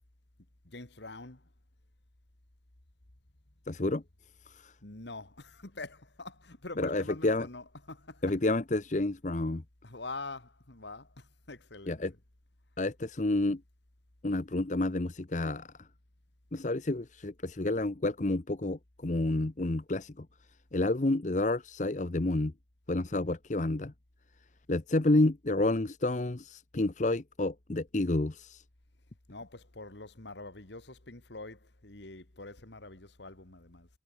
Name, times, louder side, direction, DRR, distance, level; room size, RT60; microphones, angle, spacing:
voice 1, 0.6-1.5 4.8-8.3 9.8-12.1 29.3-33.9, left 3 dB, 65° left, 2.2 m, -45 dB
voice 2, 3.7-4.0 4.5-4.7 6.8-7.5 8.2-9.6 11.9-12.1 12.8-13.6 14.2-15.9 16.5-20.3 20.7-22.5 22.9-23.9 24.7-28.6, left 2 dB, 40° left, 0.8 m, -29 dB
head